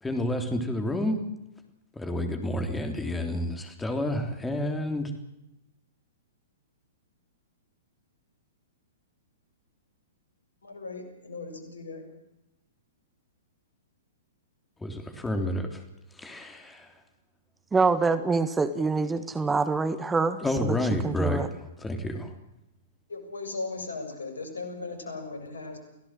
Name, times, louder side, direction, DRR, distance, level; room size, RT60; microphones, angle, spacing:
voice 1, 0.0-1.2 2.0-5.1 14.8-15.8 16.2-16.9 20.4-21.4 21.8-22.3, left 1 dB, 10° left, 5 dB, 3.4 m, -29 dB
voice 2, 10.6-12.0 23.1-25.8, left 3 dB, 75° left, 5 dB, 7.1 m, -37 dB
voice 3, 17.7-20.4 20.7-20.8 21.0-21.5, right 4 dB, 10° right, 11 dB, 1.6 m, -25 dB
29.0 x 17.5 x 7.7 m, 0.92 s
figure-of-eight pair, 110°, 0 cm